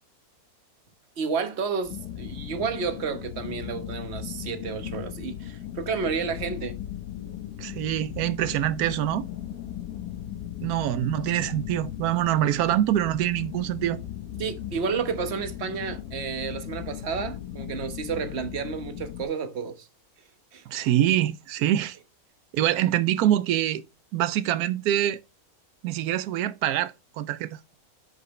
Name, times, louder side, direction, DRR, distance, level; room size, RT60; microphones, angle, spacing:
voice 1, 1.2-6.8 14.4-19.9 20.5-20.6, right 5 dB, 50° right, 1.3 m, -31 dB
sound 1, 1.8-19.2, left 11 dB, 80° left, 1.3 m, -37 dB
voice 2, 7.6-9.3 10.6-14.0 20.7-22.0 22.5-23.8 24.1-25.2 25.8-27.8, right 12 dB, 90° right, 1.1 m, -25 dB
11.0 x 5.3 x 3.1 m
omnidirectional pair, 1.6 m